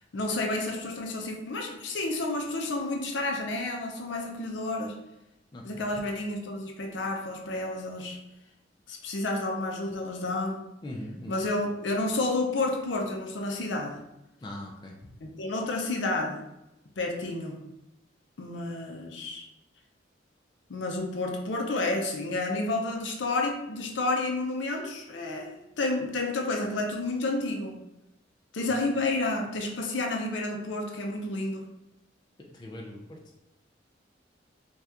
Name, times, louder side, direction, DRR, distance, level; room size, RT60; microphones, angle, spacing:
voice 1, 0.1-4.9 5.6-8.2 8.9-10.6 11.3-14.0 15.2-16.4 17.0-17.6 18.4-19.5 20.7-25.5 25.8-27.7 28.5-31.7, left 2 dB, 75° left, 1 dB, 0.5 m, -30 dB
voice 2, 5.5-5.9 10.8-11.3 14.4-14.9 28.7-28.8 32.5-33.2, left 1 dB, 25° left, -1 dB, 0.4 m, -40 dB
2.8 x 2.3 x 3.5 m, 0.91 s
head